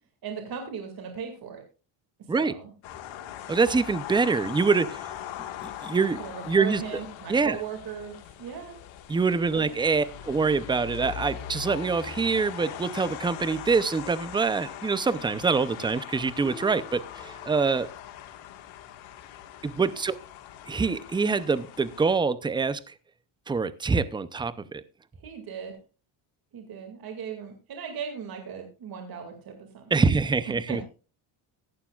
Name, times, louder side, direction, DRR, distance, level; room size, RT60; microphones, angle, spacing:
voice 1, 0.2-1.6 2.3-2.7 6.2-8.7 9.5-9.7 19.8-20.0 25.2-25.7 26.5-30.0 30.7-30.9, right 7 dB, 50° right, 4 dB, 2.3 m, -38 dB
sound 1, 2.8-22.2, left 11 dB, 85° left, 1.7 m, -41 dB
voice 2, 3.5-5.1 5.6-6.2 6.5-7.0 7.3-7.6 9.1-17.9 19.6-20.1 20.7-22.9 23.5-24.8 29.9-30.8, right 4 dB, 10° right, 15 dB, 0.5 m, -25 dB
sound 2, 10.9-13.1 13.6-14.7 16.4-17.8, left 3 dB, 20° left, 1.6 m, -48 dB
15.0 x 11.5 x 2.4 m, 0.34 s
cardioid pair, 140°, 45 cm